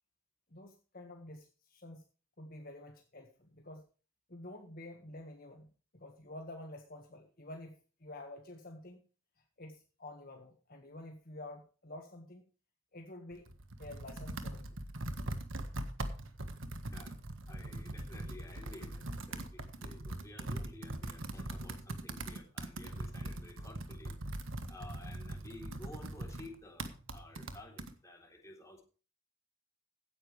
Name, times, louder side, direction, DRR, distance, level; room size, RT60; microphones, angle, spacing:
voice 1, 0.5-2.0 2.4-3.8 4.3-9.0 9.6-12.4 12.9-13.5 13.8-14.8, left 1 dB, 45° left, 3 dB, 1.7 m, -49 dB
Computer keyboard, 13.3-27.9, right 1 dB, 65° right, 1.6 m, -41 dB
voice 2, 16.9-24.3 24.7-28.8, left 2 dB, 15° left, 0 dB, 3.7 m, -53 dB
16.5 x 10.0 x 3.4 m, 0.37 s
head